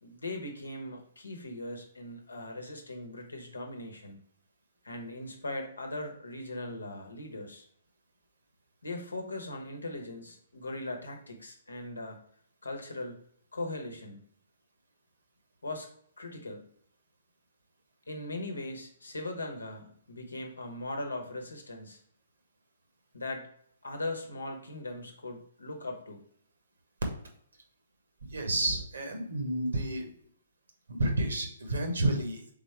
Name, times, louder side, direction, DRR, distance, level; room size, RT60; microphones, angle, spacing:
voice 1, 0.0-4.2 4.8-7.6 8.8-12.2 12.6-13.2 13.5-14.2 15.6-15.9 16.2-16.7 18.1-22.0 23.1-23.5 23.8-26.2, left 2 dB, 80° left, 3 dB, 0.9 m, -39 dB
voice 2, 28.3-30.1 30.9-32.5, right 1 dB, 70° right, 3 dB, 1.1 m, -30 dB
3.9 x 3.7 x 3.2 m, 0.64 s
figure-of-eight pair, 125°, 0 cm